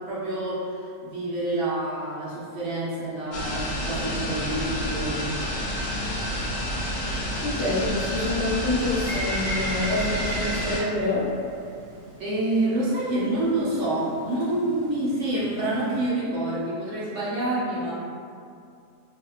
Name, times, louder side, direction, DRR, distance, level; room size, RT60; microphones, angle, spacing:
voice 1, 0.1-5.4 12.2-17.9, right 1 dB, 65° right, -8 dB, 1.0 m, -27 dB
sound 1, 3.3-10.8, equal, 65° left, 0.9 m, -29 dB
voice 2, 7.4-11.3, left 2 dB, 35° left, -12 dB, 0.6 m, -27 dB
Bird, 8.8-16.1, right 1 dB, 40° right, 0.6 m, -38 dB
2.9 x 2.7 x 2.3 m, 2.4 s
omnidirectional pair, 1.4 m